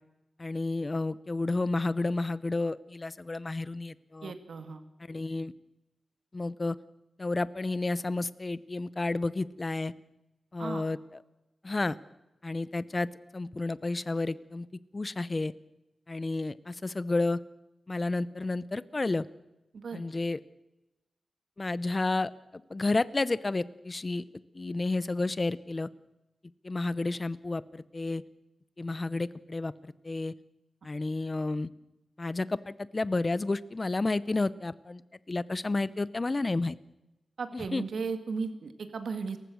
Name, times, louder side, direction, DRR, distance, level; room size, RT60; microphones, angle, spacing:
voice 1, 0.4-4.3 5.1-5.5 6.3-6.8 7.2-9.9 10.5-11.0 11.6-12.0 12.4-13.1 13.3-14.7 14.9-15.5 16.1-17.4 17.9-19.2 19.9-20.4 21.6-22.3 22.7-24.2 24.5-25.9 26.6-28.2 28.8-29.7 30.0-30.3 30.8-31.7 32.2-35.0 35.3-36.8 37.5-37.8, left 2 dB, 30° left, 17 dB, 0.7 m, -31 dB
voice 2, 4.2-4.8 10.6-10.9 19.7-20.0 37.4-39.4, right 5 dB, 75° right, 8 dB, 2.1 m, -35 dB
29.5 x 15.0 x 6.4 m, 0.96 s
wide cardioid pair, 130°, 0 cm